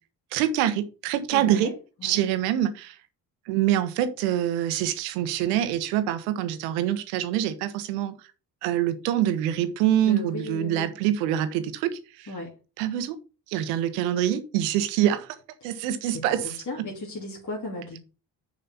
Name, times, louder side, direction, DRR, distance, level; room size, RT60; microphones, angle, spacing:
voice 1, 0.3-1.7 2.0-3.0 3.5-8.1 8.6-12.3 12.8-13.2 13.5-15.4 15.6-16.6, right 11 dB, 85° right, 12 dB, 1.2 m, -25 dB
voice 2, 1.3-1.7 2.0-2.2 10.0-10.9 12.3-12.5 15.6-15.8 16.1-18.0, left 2 dB, 35° left, -2 dB, 2.8 m, -36 dB
6.8 x 5.3 x 5.7 m, 0.33 s
hypercardioid pair, 50°, 48 cm